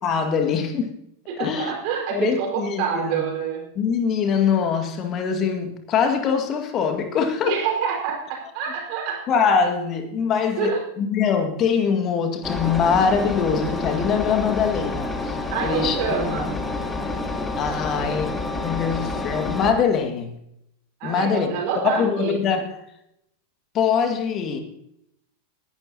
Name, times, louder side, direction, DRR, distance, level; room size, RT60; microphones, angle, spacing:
voice 1, 0.0-0.9 1.4-1.7 2.1-3.2 3.8-7.6 9.3-16.5 17.6-18.4 18.6-20.3 21.0-22.8 23.7-24.6, left 6 dB, 30° left, 6 dB, 2.0 m, -23 dB
voice 2, 1.4-3.6 7.4-9.2 10.6-10.8 15.5-16.5 21.0-22.3, right 7 dB, 45° right, -1 dB, 4.9 m, -26 dB
Engine, 12.4-19.7, left 2 dB, 10° left, 1.3 m, -28 dB
19.0 x 12.0 x 2.9 m, 0.77 s
figure-of-eight pair, 90°, 0 cm